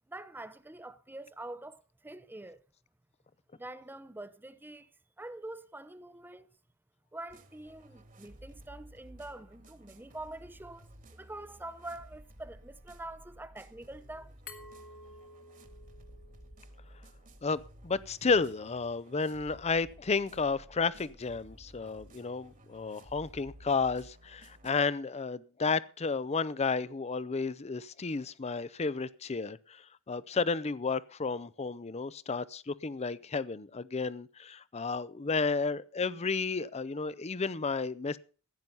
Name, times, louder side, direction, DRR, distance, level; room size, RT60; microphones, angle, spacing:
voice 1, 0.1-2.6 3.6-4.9 5.2-6.5 7.1-10.9 11.2-14.3, right 2 dB, 10° right, 0.7 m, -45 dB
sound 1, 7.3-24.7, right 1 dB, 40° right, 1.8 m, -54 dB
Glass, 14.5-17.2, left 3 dB, 65° left, 2.4 m, -52 dB
voice 2, 17.4-38.2, left 4 dB, 30° left, 0.6 m, -32 dB
15.5 x 9.3 x 5.5 m
head